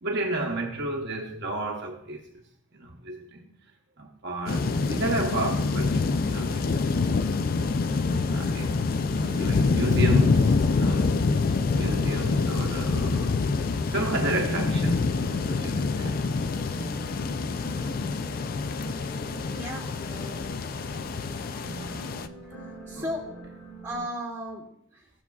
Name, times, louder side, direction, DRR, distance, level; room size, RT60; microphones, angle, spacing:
voice 1, 0.0-2.2 2.7-3.5 4.0-6.8 8.3-8.8 9.2-11.2 11.7-13.4 13.9-15.1 15.5-16.2 22.9-23.1, right 2 dB, 55° right, 0.9 m, -32 dB
sound 1, 4.5-22.3, left 4 dB, 45° left, 0.3 m, -26 dB
sound 2, 4.5-24.1, right 2 dB, 5° left, 3.4 m, -43 dB
voice 2, 19.5-20.3 22.9-23.4 23.8-24.6 24.9-25.0, equal, 10° right, 2.2 m, -35 dB
16.5 x 7.2 x 2.3 m
head